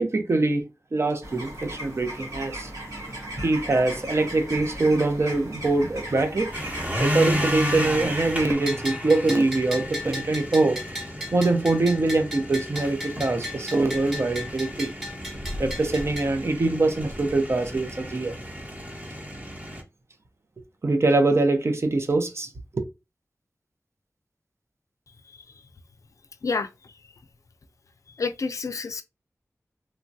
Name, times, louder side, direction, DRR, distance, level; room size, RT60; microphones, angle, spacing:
voice 1, 0.0-2.7 3.4-6.5 7.0-10.8 11.3-14.9 15.6-18.3 20.8-22.8, right 2 dB, 50° right, 0.6 m, -23 dB
sound 1, 1.2-8.5, right 1 dB, 85° right, 1.3 m, -36 dB
sound 2, 6.5-19.8, equal, 30° right, 1.0 m, -33 dB
Bell, 8.7-16.3, left 1 dB, ahead, 1.1 m, -36 dB
voice 2, 28.2-29.0, left 4 dB, 70° left, 0.3 m, -28 dB
3.0 x 2.2 x 2.6 m
wide cardioid pair, 85°, 6 cm